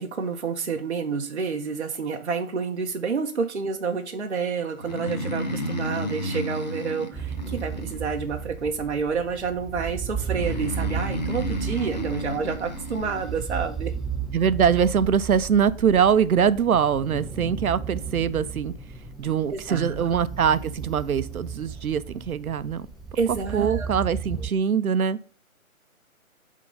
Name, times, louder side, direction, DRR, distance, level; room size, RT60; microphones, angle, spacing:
voice 1, 0.0-13.9 19.5-20.1 23.1-23.9, right 5 dB, 50° right, 0.8 m, -29 dB
Breathing, 4.8-8.5 10.3-13.4, equal, 30° left, 0.7 m, -32 dB
sound 1, 7.1-24.5, right 6 dB, ahead, 0.3 m, -34 dB
voice 2, 14.3-18.7 19.2-22.9 23.5-25.2, right 7 dB, 85° right, 0.7 m, -23 dB
8.7 x 3.8 x 5.3 m
hypercardioid pair, 170°, 42 cm